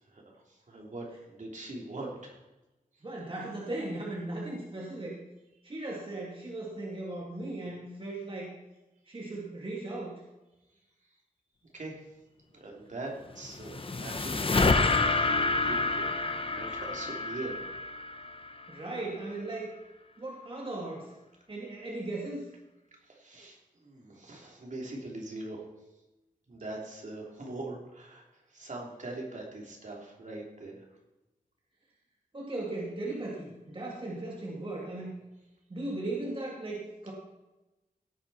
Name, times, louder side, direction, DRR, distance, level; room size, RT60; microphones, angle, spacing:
voice 1, 0.1-2.4 11.7-12.0 12.5-17.6 23.0-25.7 26.5-30.8, right 2 dB, 60° right, -1 dB, 3.4 m, -42 dB
voice 2, 3.0-5.1 5.6-8.5 9.1-10.1 18.7-19.7 20.2-21.1 21.5-22.5 32.3-35.1 35.7-37.1, right 2 dB, 35° right, -3 dB, 2.5 m, -37 dB
sound 1, 13.3-18.7, left 3 dB, 40° left, 1.0 m, -28 dB
17.5 x 8.9 x 4.3 m, 1.0 s
wide cardioid pair, 100°, 15 cm